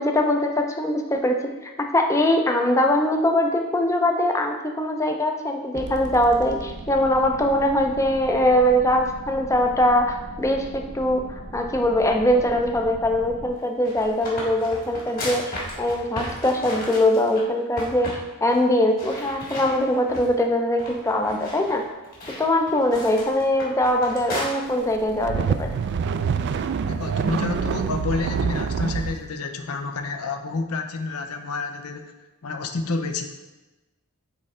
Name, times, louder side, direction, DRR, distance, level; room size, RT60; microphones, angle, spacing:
voice 1, 0.0-1.4 1.6-11.2 11.5-15.5 15.8-21.8 22.4-25.7, left 1 dB, 15° left, 3 dB, 0.5 m, -22 dB
sound 1, 5.7-13.5, right 2 dB, 35° right, 0.8 m, -38 dB
sound 2, 13.6-17.4 17.8-18.2 18.5-18.6 19.0-20.4 20.8-24.4, left 1 dB, 40° left, 1.7 m, -35 dB
sound 3, 24.9-29.2, right 6 dB, 50° right, 0.3 m, -25 dB
voice 2, 26.8-32.1 32.4-33.3, left 3 dB, 80° left, 6 dB, 0.6 m, -29 dB
8.4 x 3.2 x 3.7 m, 1.1 s
head